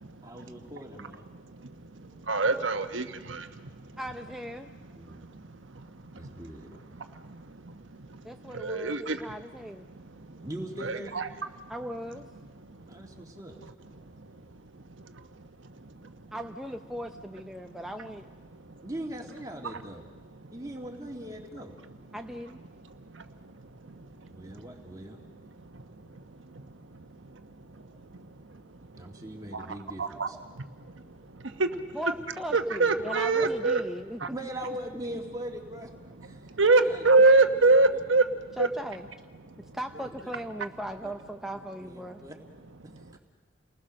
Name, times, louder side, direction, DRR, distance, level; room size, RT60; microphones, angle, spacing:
voice 1, 0.2-1.2 4.9-5.3 6.1-7.0 10.4-11.2 12.9-13.6 18.8-20.0 20.5-21.7 24.3-25.2 29.0-30.4 34.3-35.9 36.2-36.4 36.8-37.1 37.6-37.8 39.9-40.1 41.0-41.1 41.8-42.3, right 1 dB, 20° right, 1 dB, 2.3 m, -40 dB
voice 2, 1.3-3.7 5.1-5.4 5.7-5.9 6.1-6.4 7.0-8.2 8.5-9.2 9.9-10.4 10.8-11.2 11.6-11.7 15.1-15.2 15.8-16.1 23.1-23.2 23.9-24.1 24.4-24.6 25.7-25.8 26.1-26.2 26.5-26.6 26.9-27.4 28.1-28.2 28.9-29.1 29.5-29.7 30.0-30.3 30.5-30.7 30.9-31.0 31.3-31.8 32.5-33.8 34.2-34.3 36.5-38.7, right 3 dB, 85° right, 8 dB, 1.2 m, -26 dB
voice 3, 4.0-4.7 8.2-9.9 11.7-12.3 16.3-18.3 22.1-22.6 31.9-34.2 38.6-39.1 39.7-42.2, equal, ahead, 4 dB, 0.6 m, -38 dB
30.0 x 20.0 x 6.5 m, 1.5 s
head